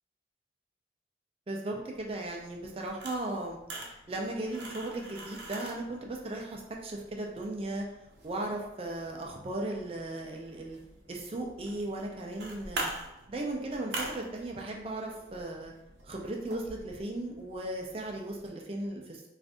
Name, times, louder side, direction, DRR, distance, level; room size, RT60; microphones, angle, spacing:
voice 1, 1.5-7.8 8.2-10.8 11.1-12.9 13.3-15.7 16.0-19.3, right 1 dB, 30° right, 0 dB, 0.4 m, -36 dB
sound 1, 1.9-18.5, right 2 dB, 85° right, 0.6 m, -45 dB
2.5 x 2.5 x 3.5 m, 0.88 s
head